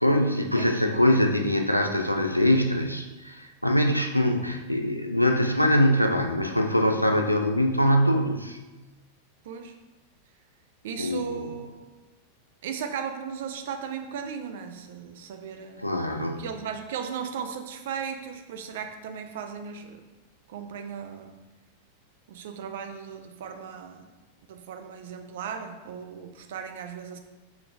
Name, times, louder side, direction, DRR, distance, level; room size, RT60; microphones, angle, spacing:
voice 1, 0.0-8.6 11.0-11.4 15.8-16.4, left 1 dB, 90° left, 5 dB, 0.3 m, -23 dB
voice 2, 0.6-1.2 9.4-9.8 10.8-11.8 12.6-15.9 16.4-20.1 20.5-21.4 22.3-24.1 24.5-27.2, right 7 dB, 55° right, 6 dB, 0.4 m, -36 dB
4.9 x 2.9 x 2.5 m, 1.1 s
figure-of-eight pair, 90°, 0 cm